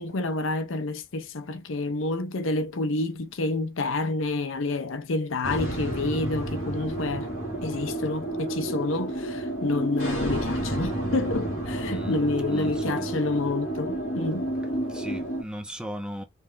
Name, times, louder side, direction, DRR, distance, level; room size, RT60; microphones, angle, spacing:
voice 1, 0.0-7.3 7.6-14.5, left 2 dB, 65° left, 0.6 m, -28 dB
sound 1, 5.4-15.4, right 1 dB, 45° left, 2.9 m, -30 dB
voice 2, 11.8-12.2 12.5-13.3 14.9-16.2, equal, 5° right, 0.9 m, -37 dB
5.3 x 3.2 x 2.5 m
head